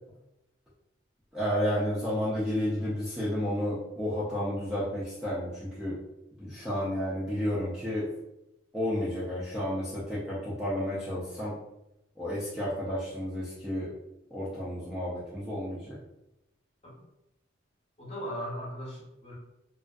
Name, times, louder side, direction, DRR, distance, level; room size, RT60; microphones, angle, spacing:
voice 1, 1.3-6.0 6.4-8.1 8.7-11.5 12.2-13.9 14.3-16.0, equal, 5° right, -9 dB, 0.4 m, -31 dB
voice 2, 18.0-19.3, equal, 30° left, -5 dB, 0.7 m, -38 dB
2.5 x 2.3 x 2.2 m, 0.89 s
head